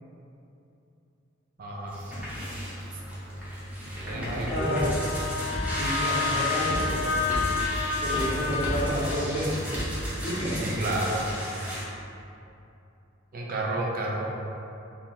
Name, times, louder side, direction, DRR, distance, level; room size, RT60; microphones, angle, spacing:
voice 1, 1.6-2.0 4.0-5.0 10.6-11.3 13.3-14.2, right 1 dB, 45° right, -3 dB, 0.6 m, -30 dB
sound 1, 1.9-11.8, equal, 5° right, 0.9 m, -32 dB
voice 2, 4.1-4.9 5.8-7.0 8.0-9.5 10.2-10.8, equal, 30° left, -12 dB, 0.8 m, -30 dB
Wind instrument woodwind instrument, 4.6-9.0, left 5 dB, 75° left, 0.3 m, -30 dB
4.6 x 2.0 x 3.7 m, 2.8 s
head